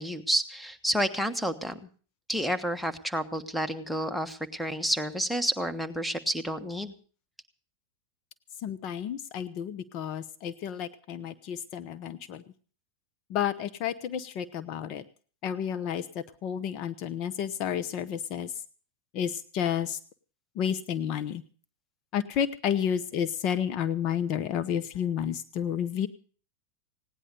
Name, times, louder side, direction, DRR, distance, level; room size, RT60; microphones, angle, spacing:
voice 1, 0.0-1.8 2.3-6.9, equal, ahead, 10 dB, 1.4 m, -30 dB
voice 2, 8.6-12.4 13.3-15.0 15.4-18.5 19.1-20.0 20.6-21.4 22.1-26.1, left 9 dB, 45° left, 12 dB, 0.9 m, -31 dB
17.5 x 10.0 x 6.8 m, 0.42 s
hypercardioid pair, 95°, 0 cm